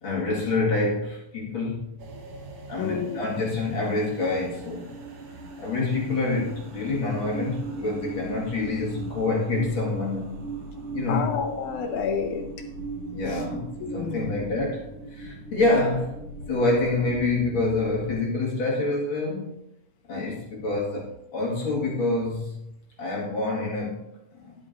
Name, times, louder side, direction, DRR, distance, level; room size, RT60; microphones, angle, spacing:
voice 1, 0.0-1.9 2.7-5.0 5.6-10.4 10.9-11.3 13.1-16.2 16.5-19.6 20.1-22.7 23.0-24.1 24.3-24.6, left 2 dB, 40° left, -3 dB, 2.3 m, -27 dB
sound 1, 2.0-18.1, right 3 dB, 55° right, 1.7 m, -38 dB
voice 2, 2.8-3.2 11.1-12.5 13.3-13.4 13.8-14.3, left 6 dB, 70° left, 5 dB, 2.3 m, -29 dB
11.0 x 11.0 x 2.6 m, 0.82 s
omnidirectional pair, 3.8 m